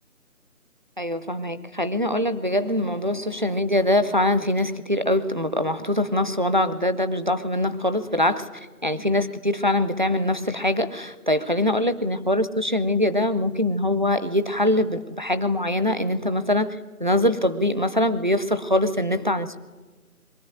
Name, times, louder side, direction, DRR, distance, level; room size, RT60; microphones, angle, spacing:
voice 1, 1.0-8.5 8.8-19.6, left 1 dB, 35° right, 12 dB, 0.7 m, -23 dB
22.5 x 14.5 x 9.1 m, 1.4 s
figure-of-eight pair, 180°, 44 cm